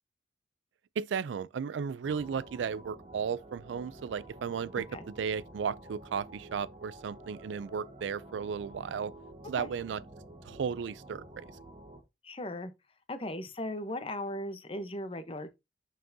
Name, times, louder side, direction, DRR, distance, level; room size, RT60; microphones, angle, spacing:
voice 1, 1.0-9.1 9.5-10.0 10.4-11.5, right 6 dB, 90° right, 0.4 m, -35 dB
sound 1, 2.0-12.0, right 1 dB, 35° right, 1.2 m, -50 dB
voice 2, 12.2-12.7 13.1-15.5, left 1 dB, 30° left, 0.9 m, -37 dB
6.7 x 6.3 x 2.7 m
head